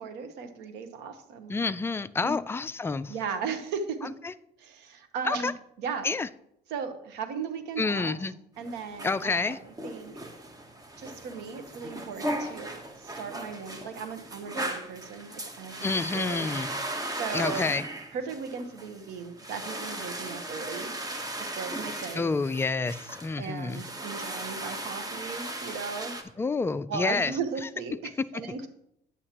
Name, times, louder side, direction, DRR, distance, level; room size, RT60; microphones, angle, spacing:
voice 1, 0.0-1.6 2.2-2.4 3.1-4.1 4.6-6.1 6.7-8.2 8.6-10.1 11.0-15.7 16.1-16.5 17.2-17.7 18.1-20.9 21.4-22.3 23.4-26.2 26.9-28.7, right 6 dB, 90° right, 9 dB, 1.0 m, -37 dB
voice 2, 1.5-3.1 4.2-4.3 5.2-5.5 6.0-6.3 7.8-8.3 9.0-9.6 15.8-16.7 17.3-17.8 22.1-23.8 26.4-27.3, left 4 dB, 15° left, 12 dB, 0.3 m, -28 dB
sound 1, 8.6-26.2, right 1 dB, 20° right, 1.1 m, -37 dB
9.8 x 8.2 x 2.9 m, 0.76 s
cardioid pair, 110°, 17 cm